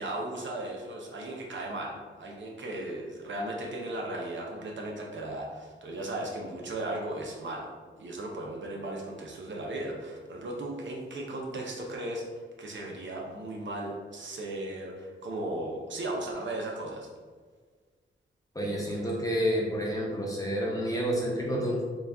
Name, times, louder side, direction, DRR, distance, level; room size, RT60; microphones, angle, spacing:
voice 1, 0.0-7.7 8.0-17.1, right 1 dB, 60° right, -1 dB, 0.7 m, -36 dB
voice 2, 18.5-21.8, equal, 15° left, -3 dB, 0.9 m, -29 dB
4.0 x 2.4 x 3.4 m, 1.5 s
wide cardioid pair, 90°, 21 cm